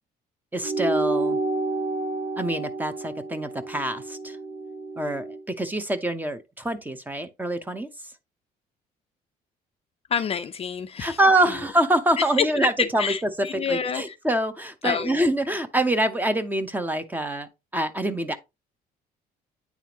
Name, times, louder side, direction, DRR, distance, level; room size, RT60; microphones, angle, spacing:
voice 1, 0.5-1.4 2.4-4.4 5.0-7.9 11.0-18.4, right 1 dB, 10° right, 0.8 m, -25 dB
sound 1, 0.6-5.4, right 3 dB, 50° right, 1.3 m, -29 dB
voice 2, 10.1-11.2 12.6-14.2 14.8-15.2, left 7 dB, 35° left, 0.5 m, -29 dB
9.3 x 3.6 x 2.9 m
cardioid pair, 110°, 17 cm